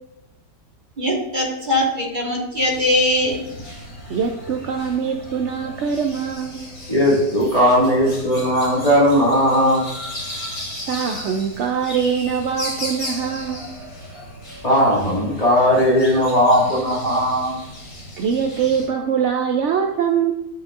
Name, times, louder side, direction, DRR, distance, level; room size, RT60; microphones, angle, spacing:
voice 1, 1.0-3.4, left 1 dB, 30° right, -3 dB, 1.6 m, -21 dB
sound 1, 2.5-18.9, left 1 dB, 50° left, 3.0 m, -36 dB
voice 2, 4.1-6.6 10.9-13.7 18.2-20.3, right 7 dB, 70° right, 3 dB, 0.6 m, -23 dB
voice 3, 6.9-9.9 14.6-17.6, equal, 20° left, -5 dB, 2.0 m, -17 dB
11.5 x 5.4 x 2.5 m, 0.88 s
omnidirectional pair, 1.8 m